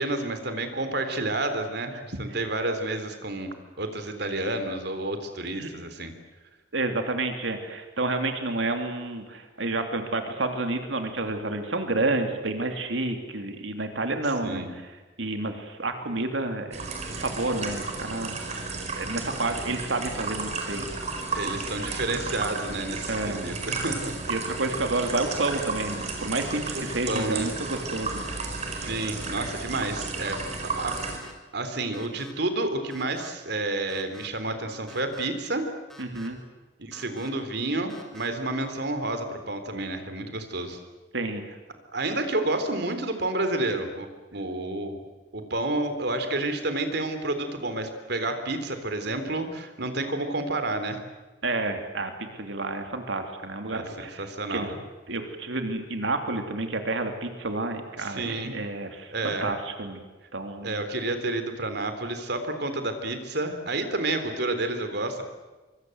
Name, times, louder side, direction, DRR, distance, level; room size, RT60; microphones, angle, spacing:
voice 1, 0.0-3.5 3.8-6.1 14.4-14.7 21.3-24.1 26.8-27.5 28.3-28.4 28.7-31.0 31.5-35.6 36.8-40.8 41.9-45.0 45.3-51.0 53.7-54.8 58.0-58.5 59.1-59.5 60.6-65.2, right 2 dB, 60° right, 8 dB, 3.6 m, -30 dB
voice 2, 6.7-14.8 15.2-18.6 18.9-20.9 23.1-23.5 24.3-28.2 36.0-36.4 41.1-41.4 51.4-54.7 55.1-60.0 60.3-60.8, right 2 dB, 85° right, 5 dB, 3.0 m, -30 dB
sound 1, 16.7-31.2, right 3 dB, 40° right, 4.9 m, -33 dB
sound 2, 27.9-28.3 28.9-29.3 29.9-30.3 30.9-31.3 31.9-32.3 32.9-33.3 33.9-34.3 34.9-35.3 35.9-36.3 36.9-37.3 37.9-38.3, left 1 dB, ahead, 4.1 m, -48 dB
25.0 x 24.5 x 8.0 m, 1.2 s
head